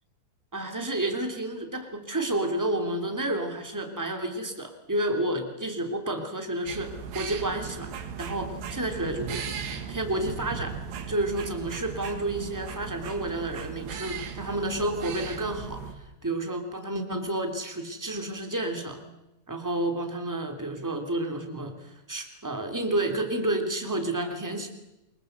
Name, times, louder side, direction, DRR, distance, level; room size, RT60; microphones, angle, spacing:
voice 1, 0.5-7.9 8.2-9.4 9.9-10.7 11.1-19.0 19.5-24.7, right 1 dB, 5° right, 5 dB, 1.7 m, -30 dB
sound 1, 6.7-15.9, right 6 dB, 85° right, 4.3 m, -37 dB
24.5 x 22.5 x 8.0 m, 0.96 s
omnidirectional pair, 4.9 m